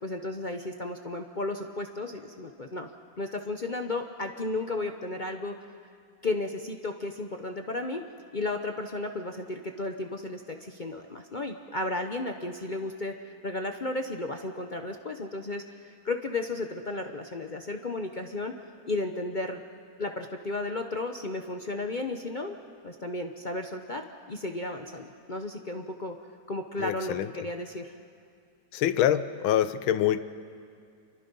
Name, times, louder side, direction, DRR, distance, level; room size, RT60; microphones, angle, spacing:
voice 1, 0.0-2.9 3.2-5.6 6.2-8.0 8.3-18.5 18.9-19.6 20.0-22.6 22.8-26.2 26.5-27.9, left 2 dB, 60° left, 4 dB, 0.4 m, -34 dB
voice 2, 26.8-27.3 28.7-30.2, left 11 dB, 80° left, 13 dB, 1.6 m, -25 dB
28.0 x 24.5 x 5.4 m, 2.3 s
omnidirectional pair, 2.2 m